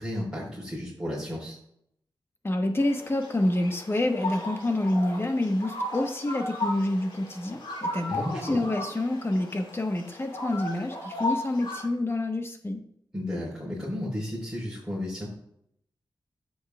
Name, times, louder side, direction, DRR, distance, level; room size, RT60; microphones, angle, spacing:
voice 1, 0.0-1.6 8.1-8.6 13.1-15.3, left 1 dB, 10° right, -9 dB, 4.2 m, -33 dB
voice 2, 2.4-12.8, left 1 dB, 30° left, 4 dB, 1.2 m, -28 dB
sound 1, 2.8-11.9, left 1 dB, 75° left, 2.3 m, -36 dB
13.0 x 8.1 x 2.4 m, 0.73 s
wide cardioid pair, 95°, 8 cm